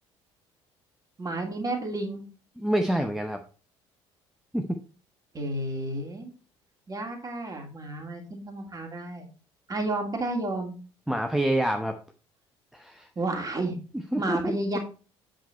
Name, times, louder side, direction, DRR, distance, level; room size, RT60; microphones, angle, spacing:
voice 1, 1.2-2.2 5.3-6.3 6.9-9.2 9.7-10.7 13.2-13.7 14.2-14.8, right 2 dB, 25° right, 3 dB, 2.8 m, -31 dB
voice 2, 2.6-3.4 4.5-4.8 11.1-11.9 12.7-13.1 14.1-14.5, right 1 dB, 5° right, 5 dB, 0.9 m, -27 dB
8.2 x 6.4 x 4.4 m, 0.36 s
figure-of-eight pair, 55°, 14 cm